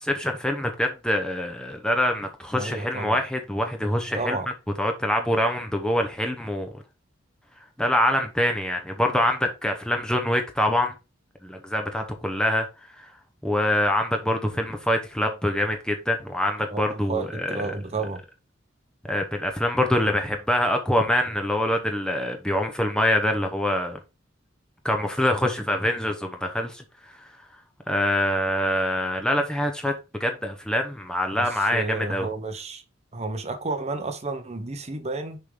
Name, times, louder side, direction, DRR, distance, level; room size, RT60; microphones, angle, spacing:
voice 1, 0.0-4.4 4.8-6.7 7.8-10.9 11.4-12.7 13.0-13.1 13.4-17.7 19.1-24.0 24.8-26.8 27.9-29.9 30.2-32.3, left 1 dB, 5° left, 0.9 m, -25 dB
voice 2, 2.5-3.2 4.1-4.5 16.7-18.2 31.3-32.8 33.1-35.4, right 3 dB, 35° right, 1.0 m, -31 dB
6.7 x 3.8 x 5.0 m
head